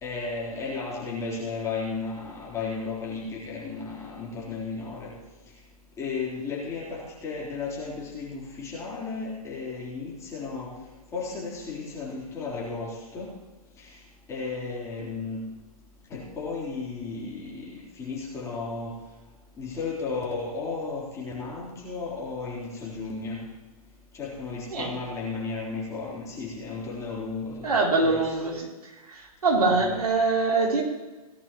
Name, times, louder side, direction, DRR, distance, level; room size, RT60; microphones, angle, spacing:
voice 1, 0.0-5.2 6.0-10.8 11.1-13.3 13.8-13.9 14.3-15.5 16.1-19.0 19.6-23.4 24.1-28.4 29.5-30.0, left 4 dB, 15° left, -5 dB, 3.5 m, -34 dB
voice 2, 27.6-28.7 29.4-30.8, right 3 dB, 75° right, -1 dB, 3.1 m, -23 dB
18.5 x 11.0 x 3.0 m, 1.2 s
hypercardioid pair, 135°, 20 cm